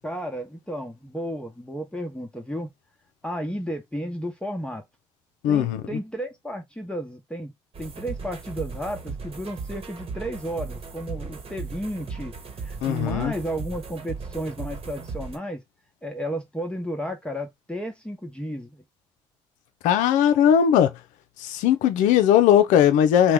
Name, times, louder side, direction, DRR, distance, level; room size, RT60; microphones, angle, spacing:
voice 1, 0.0-2.7 3.2-4.8 5.5-7.5 7.8-12.3 12.6-15.6 16.0-18.8, equal, 5° left, 0.9 m, -33 dB
voice 2, 5.4-5.8 12.8-13.3 19.8-20.9 21.4-23.3, left 9 dB, 75° left, 0.5 m, -18 dB
sound 1, 7.7-15.4, right 4 dB, 45° right, 1.1 m, -37 dB
2.9 x 2.2 x 3.5 m
hypercardioid pair, 55°, 13 cm